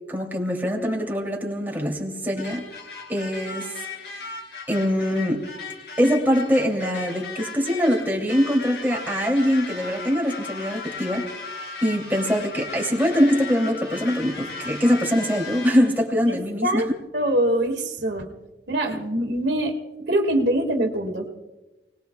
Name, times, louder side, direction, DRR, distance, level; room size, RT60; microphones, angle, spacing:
voice 1, 0.1-2.7 3.1-3.7 4.1-4.2 4.7-5.5 6.0-11.3 11.8-16.8, equal, 10° right, -1 dB, 2.8 m, -23 dB
sound 1, 2.4-16.0, left 4 dB, 65° left, 3.9 m, -37 dB
voice 2, 17.1-18.3 18.7-21.3, right 1 dB, 75° right, 3 dB, 1.9 m, -24 dB
29.5 x 19.5 x 2.3 m, 1.1 s
head